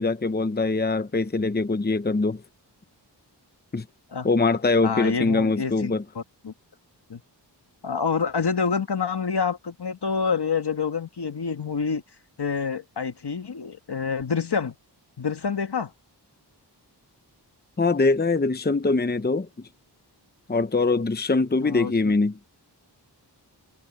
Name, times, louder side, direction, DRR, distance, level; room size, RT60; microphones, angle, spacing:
voice 1, 0.0-2.4 3.7-3.8 4.2-6.0 17.8-19.7 20.5-22.4, left 3 dB, 25° left, 0.8 m, -23 dB
voice 2, 4.8-6.5 7.1-7.2 7.8-12.0 12.4-14.7 15.2-15.9 21.6-21.9, left 5 dB, 65° left, 1.6 m, -27 dB
wide cardioid pair, 75°, 42 cm